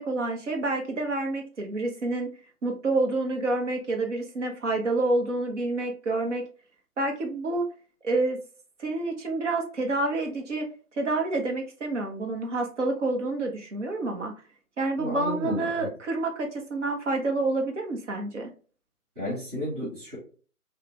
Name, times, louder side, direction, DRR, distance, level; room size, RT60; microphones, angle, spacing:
voice 1, 0.0-2.3 2.6-6.4 7.0-7.7 8.0-8.4 8.8-10.7 10.9-14.3 14.8-18.5, right 2 dB, 50° right, 3 dB, 1.0 m, -28 dB
voice 2, 15.0-15.9 19.1-20.2, left 1 dB, 25° right, -11 dB, 1.6 m, -32 dB
3.7 x 2.4 x 3.1 m, 0.39 s
figure-of-eight pair, 155°, 45 cm